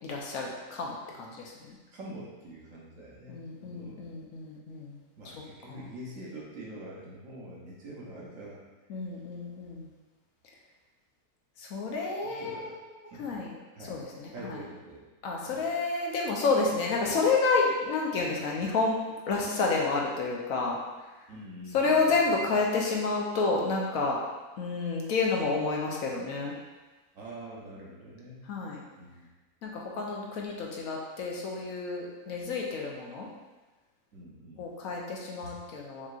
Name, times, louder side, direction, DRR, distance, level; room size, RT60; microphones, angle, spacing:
voice 1, 0.0-1.8 3.3-5.0 5.3-5.4 5.7-5.8 8.9-9.9 11.6-12.7 13.2-13.5 13.9-14.6 15.2-19.0 19.3-20.8 21.7-24.2 24.6-26.5 28.5-28.8 29.6-33.3 34.6-36.1, left 3 dB, 70° left, -2 dB, 1.1 m, -30 dB
voice 2, 1.9-4.2 5.2-8.6 12.2-13.4 13.7-14.0 14.3-15.1 15.5-15.6 21.3-22.5 27.1-28.5 29.0-29.4 34.1-34.7 35.4-35.5, right 1 dB, 60° right, -5 dB, 1.2 m, -45 dB
5.5 x 3.0 x 2.5 m, 1.2 s
omnidirectional pair, 1.6 m